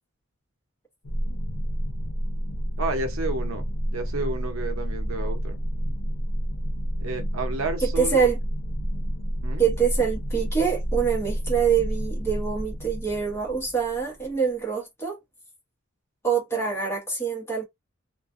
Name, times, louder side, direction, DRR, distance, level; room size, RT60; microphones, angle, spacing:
sound 1, 1.0-14.3, equal, 60° left, 0.6 m, -30 dB
voice 1, 2.8-3.7 3.9-5.6 7.0-8.3 9.4-9.7, right 3 dB, 85° right, 0.7 m, -31 dB
voice 2, 7.8-8.4 9.6-15.2 16.2-17.6, right 6 dB, 10° left, 1.0 m, -25 dB
2.4 x 2.2 x 2.5 m
head